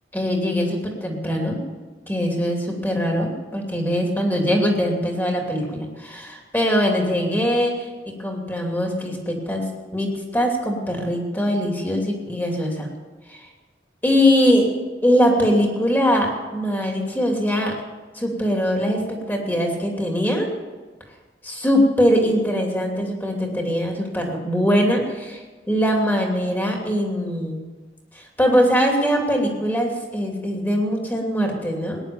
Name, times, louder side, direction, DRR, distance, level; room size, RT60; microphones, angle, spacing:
voice 1, 0.1-1.6 2.1-7.7 8.0-9.7 9.9-12.9 13.3-13.4 14.0-14.7 15.0-17.7 18.1-20.5 21.4-25.4 25.7-27.6 28.1-32.0, equal, 10° left, 0 dB, 2.7 m, -22 dB
18.5 x 10.5 x 7.0 m, 1.3 s
head